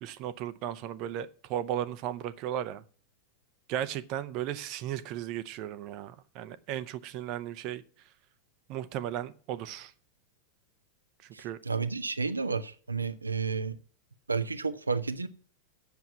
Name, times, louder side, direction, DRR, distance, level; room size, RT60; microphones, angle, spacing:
voice 1, 0.0-2.8 3.7-7.8 8.7-9.9 11.4-11.6, right 11 dB, 40° right, 0.7 m, -35 dB
voice 2, 11.3-13.8 14.3-15.3, right 4 dB, 80° right, 0.6 m, -31 dB
8.0 x 6.9 x 8.3 m
figure-of-eight pair, 90°, 0 cm